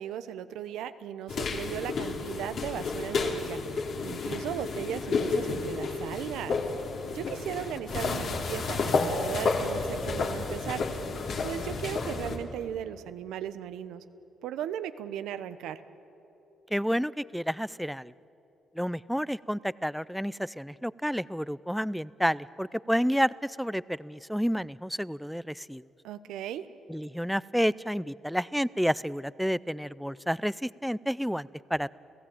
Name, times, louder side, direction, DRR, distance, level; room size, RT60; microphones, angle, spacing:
voice 1, 0.0-3.6 4.0-6.6 7.1-10.8 11.4-14.0 14.4-15.8 26.0-26.7, right 10 dB, 85° right, 12 dB, 0.9 m, -37 dB
sound 1, 1.3-12.4, left 4 dB, 60° left, 2.9 m, -31 dB
voice 2, 16.7-18.1 18.8-25.8 26.9-31.9, equal, ahead, 19 dB, 0.5 m, -30 dB
29.5 x 16.0 x 8.8 m, 3.0 s
cardioid pair, 90°, 0 cm